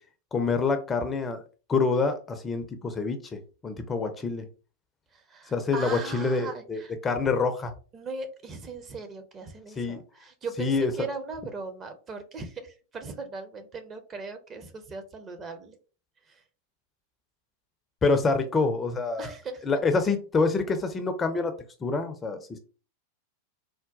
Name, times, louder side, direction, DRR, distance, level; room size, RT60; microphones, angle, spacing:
voice 1, 0.3-1.4 1.7-3.4 3.6-4.5 5.5-7.7 9.8-10.0 10.6-10.9 18.0-19.3 19.7-21.5 21.8-22.6, left 4 dB, 20° left, 7 dB, 0.4 m, -26 dB
voice 2, 5.1-6.9 7.9-15.8 16.3-16.4 19.2-19.7, right 4 dB, 25° right, 7 dB, 0.6 m, -39 dB
3.8 x 2.1 x 2.4 m, 0.36 s
figure-of-eight pair, 90°, 0 cm